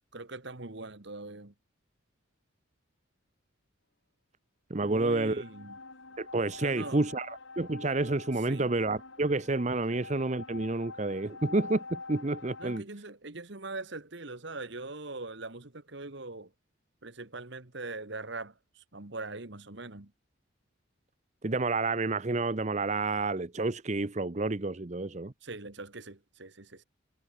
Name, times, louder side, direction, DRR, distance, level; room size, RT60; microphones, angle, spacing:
voice 1, 0.1-1.5 4.8-5.8 6.6-7.1 8.5-8.7 9.9-10.0 12.6-16.5 17.0-20.1 25.4-26.8, right 3 dB, 55° right, 1.6 m, -42 dB
sound 1, 4.7-12.8, left 3 dB, 60° left, 2.7 m, -46 dB
voice 2, 4.7-5.4 6.2-12.8 21.4-25.3, right 2 dB, 35° right, 0.7 m, -29 dB
head